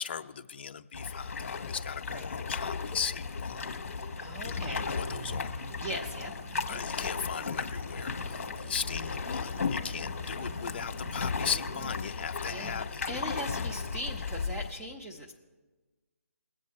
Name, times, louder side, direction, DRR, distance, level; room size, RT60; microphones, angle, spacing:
voice 1, 0.0-3.7 4.4-5.5 6.7-13.0, left 7 dB, 40° left, 9 dB, 0.5 m, -38 dB
sound 1, 0.9-14.7, left 5 dB, 55° left, 1.1 m, -35 dB
sound 2, 3.2-11.9, right 3 dB, 45° right, 1.0 m, -47 dB
voice 2, 4.2-4.9 5.8-6.8 12.5-15.3, equal, 10° right, 0 dB, 0.6 m, -40 dB
21.0 x 7.6 x 4.2 m, 1.3 s
hypercardioid pair, 160°, 8 cm